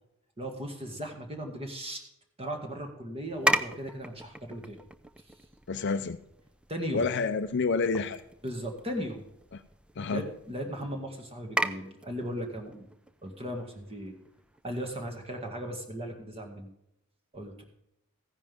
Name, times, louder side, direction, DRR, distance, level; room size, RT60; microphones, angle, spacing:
voice 1, 0.4-2.0 2.4-4.8 6.7-7.1 8.4-9.3 10.1-12.9 13.2-14.1 14.6-16.7 17.3-17.6, equal, 25° right, 4 dB, 2.0 m, -37 dB
sound 1, 3.3-15.3, right 1 dB, 5° right, 0.4 m, -37 dB
voice 2, 5.7-6.2 6.9-8.2 9.5-9.6 10.0-10.3, left 4 dB, 50° left, 9 dB, 0.5 m, -28 dB
15.0 x 10.5 x 3.6 m, 0.80 s
head